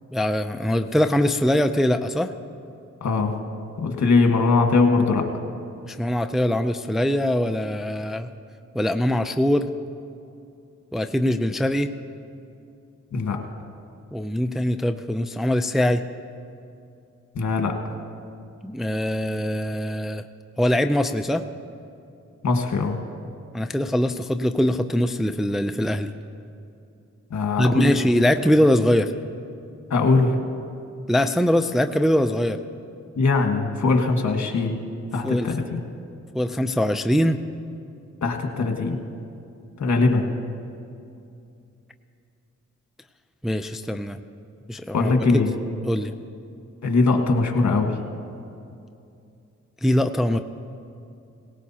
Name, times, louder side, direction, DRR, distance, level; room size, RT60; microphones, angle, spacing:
voice 1, 0.1-2.3 5.9-8.3 8.7-9.7 10.9-11.9 14.1-16.0 18.6-20.2 20.6-21.4 23.5-26.1 27.6-29.1 31.1-32.6 35.2-35.5 36.3-37.4 43.4-44.2 44.7-45.1 45.8-46.1 49.8-50.4, left 1 dB, ahead, 7 dB, 0.5 m, -22 dB
voice 2, 3.0-3.3 3.8-5.3 13.1-13.4 17.3-17.9 22.4-23.0 27.3-27.9 29.9-30.4 33.2-34.8 35.1-35.8 38.2-39.0 39.8-40.3 44.9-45.5 46.8-48.0, left 3 dB, 65° left, 3 dB, 1.7 m, -21 dB
18.0 x 17.5 x 2.9 m, 2.6 s
cardioid pair, 65°, 30 cm